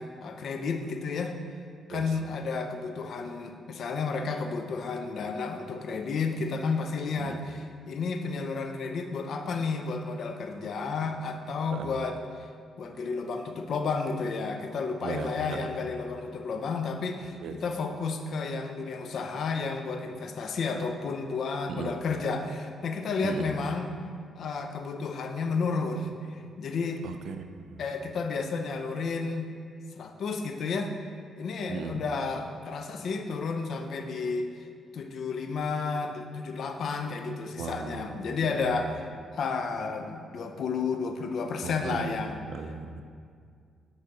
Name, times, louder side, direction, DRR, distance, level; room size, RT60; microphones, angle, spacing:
voice 1, 0.0-1.3 1.9-12.2 12.8-23.9 24.4-27.0 27.8-29.5 30.0-30.9 31.4-34.7 34.9-39.0 39.3-42.4, left 4 dB, 65° left, 6 dB, 0.7 m, -32 dB
voice 2, 15.0-15.8 17.4-17.6 21.7-22.0 23.2-23.5 27.0-27.8 31.7-32.1 37.6-38.4 38.6-38.9 41.6-43.0, right 5 dB, 75° right, 8 dB, 0.5 m, -37 dB
8.9 x 5.0 x 4.1 m, 2.2 s
cardioid pair, 80°, 0 cm